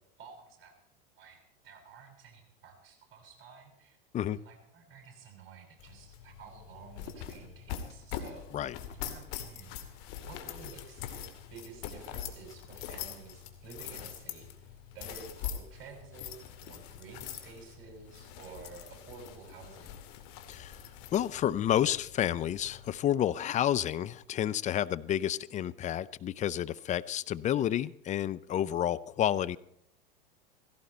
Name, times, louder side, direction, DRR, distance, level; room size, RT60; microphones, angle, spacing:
voice 1, 0.2-0.7 1.2-4.0 4.3-8.5 8.9-10.0 10.3-16.4 16.6-20.0, right 5 dB, 45° right, 3 dB, 6.4 m, -51 dB
sound 1, 5.8-23.0, left 9 dB, 55° left, 2.3 m, -43 dB
voice 2, 20.5-20.8 21.1-29.6, left 11 dB, 25° left, 16 dB, 0.5 m, -30 dB
16.5 x 16.5 x 4.3 m, 0.74 s
hypercardioid pair, 100°, 29 cm